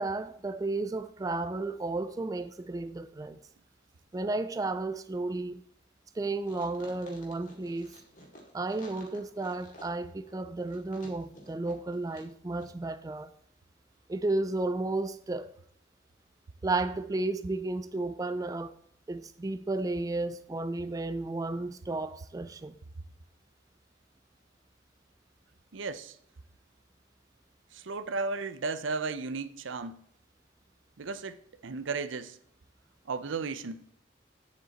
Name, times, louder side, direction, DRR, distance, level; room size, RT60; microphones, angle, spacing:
voice 1, 0.0-3.4 4.1-5.6 6.2-7.9 8.5-13.3 14.1-15.5 16.6-18.7 19.1-22.8, right 2 dB, 20° right, 0.3 m, -33 dB
sound 1, 6.4-12.3 12.6-12.7, left 1 dB, 40° left, 2.2 m, -53 dB
voice 2, 25.7-26.2 27.7-30.0 31.0-31.4 31.6-32.4 33.1-33.8, right 4 dB, 85° right, 0.6 m, -34 dB
9.1 x 7.3 x 4.1 m
head